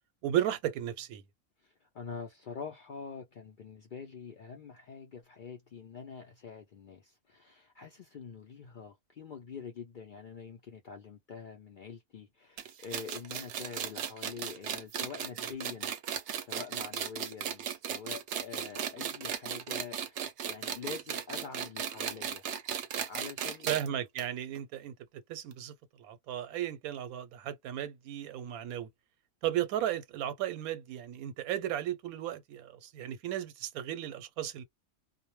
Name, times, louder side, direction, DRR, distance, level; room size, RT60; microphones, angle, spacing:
voice 1, 0.2-1.2 23.7-24.9 25.3-28.9 29.4-34.6, right 11 dB, 90° right, 1.0 m, -35 dB
voice 2, 1.6-15.9 16.4-22.5 23.1-23.7, left 6 dB, 85° left, 0.4 m, -45 dB
sound 1, 12.6-23.9 24.2-24.3 24.5-24.6 25.5-25.6, right 8 dB, 65° right, 0.8 m, -36 dB
2.2 x 2.1 x 3.0 m
omnidirectional pair, 1.5 m